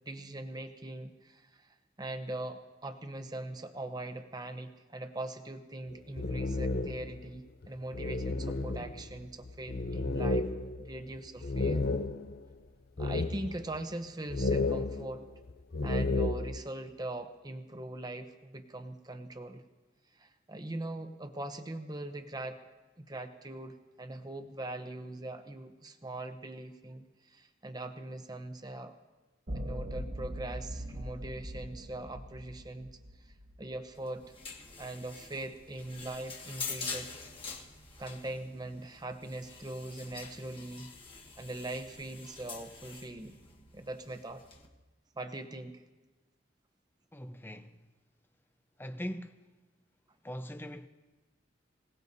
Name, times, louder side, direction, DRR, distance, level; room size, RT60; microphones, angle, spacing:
voice 1, 0.1-10.5 10.8-11.8 13.0-15.2 15.8-19.7 20.1-22.6 23.0-28.9 29.5-32.9 33.2-34.2 34.8-37.1 38.0-40.9 41.4-43.4 43.7-44.4 45.1-45.8, right 2 dB, 20° right, 0.8 m, -41 dB
sound 1, 5.9-7.2 7.6-7.7 7.9-12.5 13.0-13.8 14.3-16.6, left 3 dB, 50° left, 0.7 m, -32 dB
sound 2, 29.5-33.8, equal, 50° right, 1.6 m, -41 dB
sound 3, 33.9-44.7, left 5 dB, 25° left, 1.4 m, -45 dB
voice 2, 47.1-47.8 48.8-49.4 50.2-50.9, equal, 10° left, 0.6 m, -41 dB
25.5 x 18.0 x 2.7 m
head